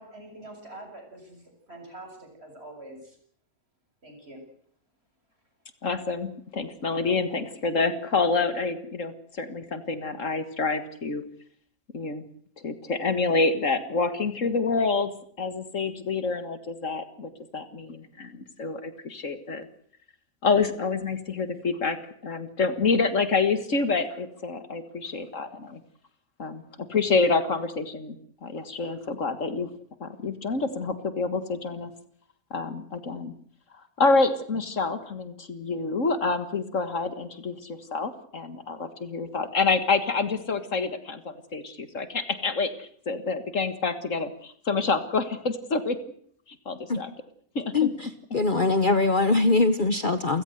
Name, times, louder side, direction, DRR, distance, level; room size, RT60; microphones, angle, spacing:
voice 1, 0.0-3.2 4.0-4.4, right 1 dB, 45° right, 3 dB, 7.8 m, -45 dB
voice 2, 5.8-11.2 11.9-12.2 12.6-15.1 15.4-19.7 20.4-22.0 22.2-25.8 26.4-28.2 28.4-29.7 30.0-31.9 32.5-33.3 34.0-46.0 46.7-47.1 47.6-47.9, left 4 dB, 60° left, 11 dB, 2.0 m, -27 dB
voice 3, 47.7-50.4, left 3 dB, 40° left, 11 dB, 1.1 m, -22 dB
29.5 x 15.5 x 7.9 m, 0.63 s
omnidirectional pair, 1.5 m